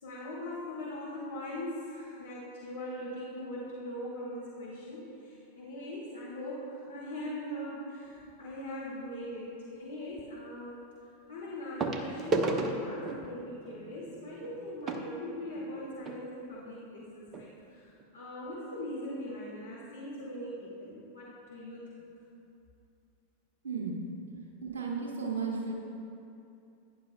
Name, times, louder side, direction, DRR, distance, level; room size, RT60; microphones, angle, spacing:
voice 1, 0.0-21.9, left 1 dB, 65° left, -7 dB, 2.1 m, -41 dB
sound 1, 8.2-8.5 10.2-10.3 11.8-16.2 17.0-17.1 17.3-17.5 18.0-18.1, right 3 dB, 25° right, 0.8 m, -35 dB
voice 2, 23.6-24.1 24.6-25.7, right 4 dB, 60° right, -2 dB, 2.3 m, -34 dB
16.5 x 10.0 x 2.3 m, 2.6 s
figure-of-eight pair, 90°, 0 cm